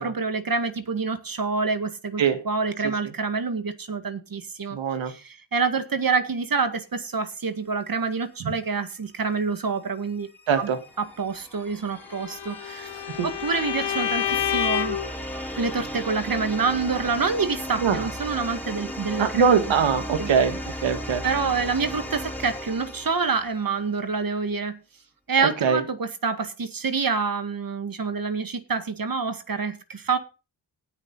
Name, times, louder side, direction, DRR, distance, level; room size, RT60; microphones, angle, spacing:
voice 1, 0.0-4.8 5.1-10.3 10.6-10.7 11.0-12.9 13.2-15.0 15.6-19.4 20.2-20.3 21.2-24.8 25.3-30.2, right 4 dB, 50° right, 2.0 m, -27 dB
voice 2, 4.7-5.1 10.5-10.8 13.2-13.3 17.8-18.0 19.2-21.2 25.4-25.8, right 6 dB, 85° right, 2.0 m, -22 dB
sound 1, 10.0-23.9, equal, 5° left, 3.8 m, -36 dB
Bowed string instrument, 12.1-15.1, left 10 dB, 65° left, 1.0 m, -28 dB
18.0 x 6.7 x 4.1 m
cardioid pair, 55°, 44 cm